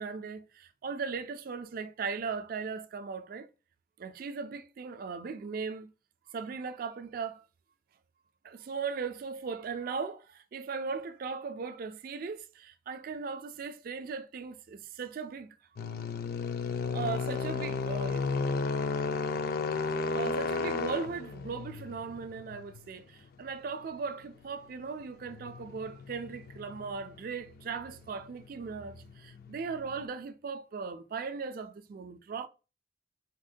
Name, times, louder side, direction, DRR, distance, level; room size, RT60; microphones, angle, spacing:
voice 1, 0.0-3.5 4.0-5.9 6.3-7.4 8.4-15.5 16.9-18.3 20.1-32.5, right 5 dB, 50° right, 0.3 m, -38 dB
sound 1, 15.8-30.0, left 4 dB, 55° left, 0.3 m, -34 dB
3.5 x 2.1 x 2.5 m
head